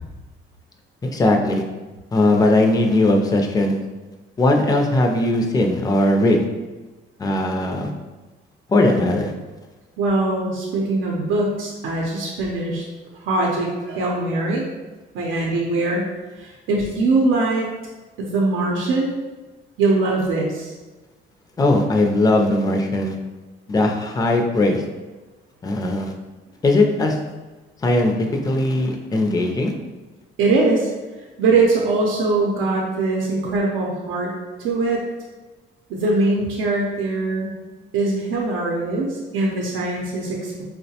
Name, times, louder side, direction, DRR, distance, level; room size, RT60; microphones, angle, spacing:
voice 1, 1.0-1.6 2.1-3.7 4.4-6.4 7.2-7.9 8.7-9.3 21.6-23.1 23.7-24.8 25.6-26.1 26.6-27.2 27.8-29.7, left 2 dB, 20° left, 2 dB, 0.4 m, -19 dB
voice 2, 10.0-12.8 13.2-14.6 15.1-16.0 16.4-17.7 18.2-19.1 19.8-20.7 30.4-30.9 31.4-34.3 34.6-35.0 35.9-37.5 37.9-40.6, right 3 dB, 85° right, -2 dB, 0.6 m, -21 dB
4.5 x 2.1 x 2.8 m, 1.2 s
cardioid pair, 90°, 20 cm